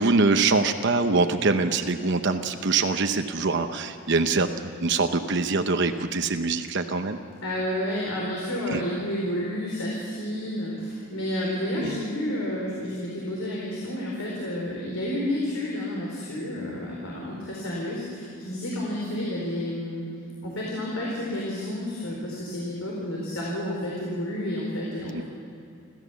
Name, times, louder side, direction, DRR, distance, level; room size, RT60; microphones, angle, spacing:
voice 1, 0.0-4.5 4.8-7.2 8.7-8.8 11.8-12.0 25.1-25.2, right 3 dB, 55° right, 7 dB, 0.9 m, -24 dB
voice 2, 7.4-20.0 20.4-25.2, left 1 dB, 80° left, -4 dB, 4.4 m, -30 dB
29.5 x 13.5 x 7.1 m, 2.7 s
head